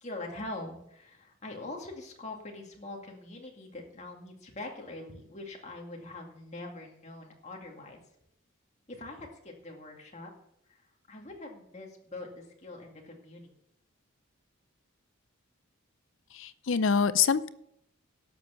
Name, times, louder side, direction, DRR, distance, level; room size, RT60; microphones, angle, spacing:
voice 1, 0.0-8.0 8.9-10.3 11.1-13.5, left 2 dB, 35° left, 1 dB, 2.2 m, -43 dB
voice 2, 16.3-17.5, left 6 dB, 60° left, 15 dB, 0.6 m, -25 dB
12.0 x 7.0 x 6.8 m, 0.77 s
head